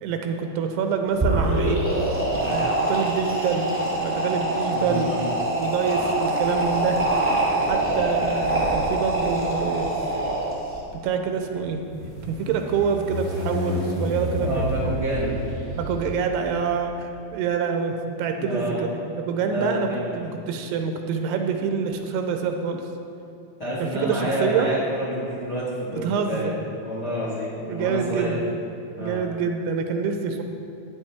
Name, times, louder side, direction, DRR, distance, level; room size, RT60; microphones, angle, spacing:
voice 1, 0.0-1.9 2.4-3.7 4.0-5.1 5.5-7.0 7.5-9.9 10.9-11.8 12.3-14.9 15.7-18.9 19.1-19.9 20.2-22.8 23.9-24.7 25.9-26.6 27.7-28.5 29.0-30.4, right 6 dB, 85° right, 5 dB, 2.7 m, -26 dB
sound 1, 1.1-10.8, right 2 dB, 5° right, 1.1 m, -24 dB
sound 2, 1.4-2.1 3.2-16.9, left 1 dB, 75° left, 4.7 m, -34 dB
voice 2, 4.7-5.3 14.3-15.4 18.4-18.9 19.4-20.3 23.6-26.5 26.8-28.4 29.0-29.2, equal, 45° left, -7 dB, 1.4 m, -29 dB
13.0 x 10.0 x 3.5 m, 2.6 s
omnidirectional pair, 4.9 m